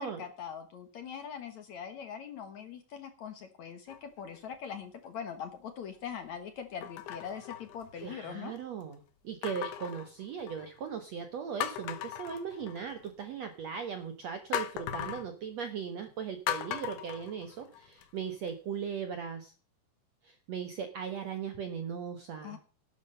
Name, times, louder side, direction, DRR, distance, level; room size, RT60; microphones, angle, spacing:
voice 1, 0.0-8.5 22.4-22.6, left 7 dB, 60° left, 7 dB, 2.1 m, -42 dB
sound 1, 3.9-4.4 5.1-5.2 6.8-8.3 9.4-10.8 11.2-11.3 11.6-13.1 14.5-15.3 16.5-18.0 18.5-18.6, left 11 dB, 90° left, 3.3 m, -38 dB
voice 2, 8.0-19.5 20.2-22.6, right 7 dB, 70° right, 8 dB, 1.7 m, -38 dB
12.0 x 10.5 x 5.6 m, 0.38 s
omnidirectional pair, 4.6 m